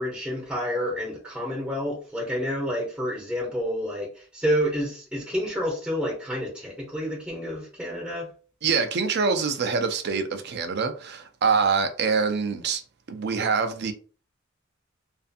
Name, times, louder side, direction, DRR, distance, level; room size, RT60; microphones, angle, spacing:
voice 1, 0.0-8.3, equal, 5° right, 0.6 m, -29 dB
voice 2, 8.6-12.8 13.1-13.9, right 5 dB, 60° right, 0.4 m, -25 dB
2.5 x 2.4 x 2.5 m
head